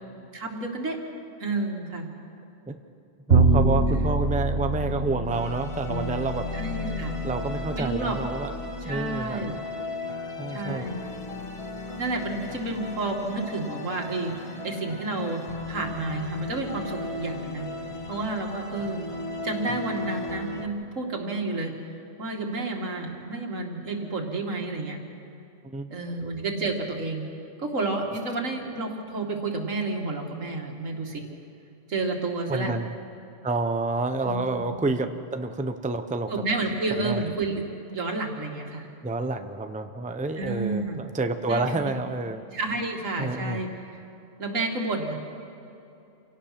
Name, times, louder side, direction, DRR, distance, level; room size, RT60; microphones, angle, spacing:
voice 1, 0.3-1.0 1.4-2.1 6.5-7.2 7.7-8.2 8.8-9.5 10.5-11.0 12.0-17.7 18.1-19.0 19.4-21.7 22.2-25.0 25.9-27.2 27.6-31.2 31.9-32.7 34.2-34.8 36.3-37.6 37.9-38.9 40.4-41.0 41.5-42.0 42.5-44.0 44.4-45.1, right 3 dB, 85° right, 2 dB, 2.5 m, -30 dB
voice 2, 3.3-6.5 7.2-8.5 8.8-9.6 10.4-10.8 25.6-25.9 32.5-32.9 33.4-36.3 37.0-37.2 39.0-42.4 43.2-43.6, right 2 dB, 10° right, 7 dB, 0.6 m, -29 dB
Bowed string instrument, 3.3-9.5, right 3 dB, 50° right, 1.4 m, -26 dB
sound 1, 5.3-20.7, left 3 dB, 25° left, 1.2 m, -36 dB
27.5 x 18.0 x 5.9 m, 2.8 s
omnidirectional pair, 1.3 m